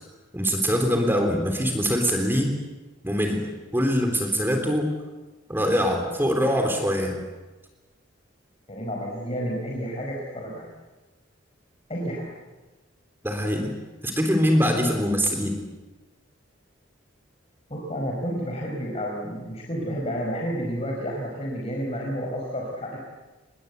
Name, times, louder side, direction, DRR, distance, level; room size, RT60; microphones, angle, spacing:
voice 1, 0.3-2.6 3.0-3.4 3.7-4.9 5.5-7.2 13.2-13.7 14.0-15.5, equal, 10° right, 4 dB, 3.6 m, -23 dB
voice 2, 8.7-10.7 11.9-12.3 17.7-23.0, equal, 30° left, -1 dB, 4.9 m, -30 dB
26.5 x 21.5 x 8.2 m, 1.2 s
head